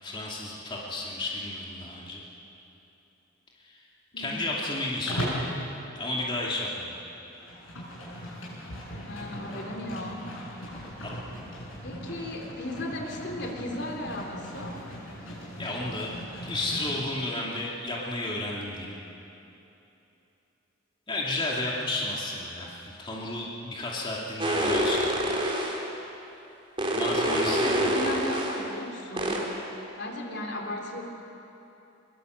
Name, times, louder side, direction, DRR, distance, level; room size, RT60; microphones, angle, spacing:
voice 1, 0.0-2.2 3.6-3.9 4.2-5.5 6.0-6.9 11.0-11.1 15.6-16.1 16.4-18.9 21.1-25.1 26.9-28.1, left 2 dB, 25° left, -4 dB, 2.6 m, -32 dB
voice 2, 4.1-4.6 9.0-10.2 11.8-14.8 27.1-29.4 30.0-31.0, left 1 dB, 55° left, 1 dB, 3.2 m, -35 dB
Livestock farm animals working animals, 5.1-5.5 7.2-17.1, equal, 85° left, 7.7 m, -38 dB
sound 1, 24.4-25.8 26.8-28.6 29.2-29.4, right 1 dB, 25° right, 3.5 m, -26 dB
24.0 x 21.5 x 8.0 m, 2.9 s
head